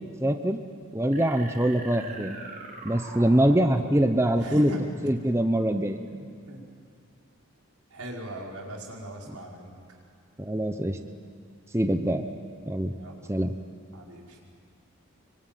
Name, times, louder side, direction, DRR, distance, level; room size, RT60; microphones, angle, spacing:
voice 1, 0.2-0.6 0.9-2.4 2.8-4.7 5.0-6.0 10.4-11.0 11.7-12.2 12.6-12.9 13.3-13.5, right 1 dB, 10° right, 7 dB, 0.8 m, -24 dB
sound 1, 1.1-4.6, right 2 dB, 40° right, 4.0 m, -42 dB
voice 2, 4.4-4.8 6.1-6.6 7.9-9.7 12.9-13.3 13.9-14.4, right 1 dB, 90° right, -1 dB, 5.1 m, -40 dB
25.0 x 24.5 x 9.2 m, 2.1 s
head